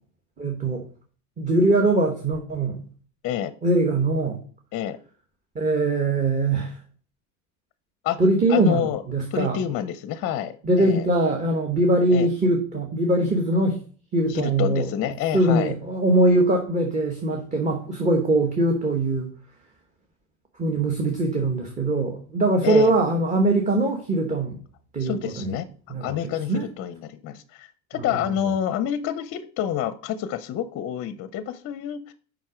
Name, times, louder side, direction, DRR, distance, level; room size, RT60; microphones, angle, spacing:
voice 1, 0.4-0.9 1.4-2.9 3.6-4.4 5.5-6.8 8.2-9.6 10.6-13.8 14.1-14.9 15.3-19.3 20.6-24.6 24.9-25.6 25.9-26.6 28.0-28.1, right 2 dB, 20° right, 1.1 m, -22 dB
voice 2, 8.5-10.5 10.8-11.0 12.1-12.3 14.3-15.7 22.6-22.9 25.0-25.7 26.0-32.1, left 10 dB, 35° left, 0.6 m, -28 dB
7.5 x 5.2 x 4.9 m
cardioid pair, 155°, 39 cm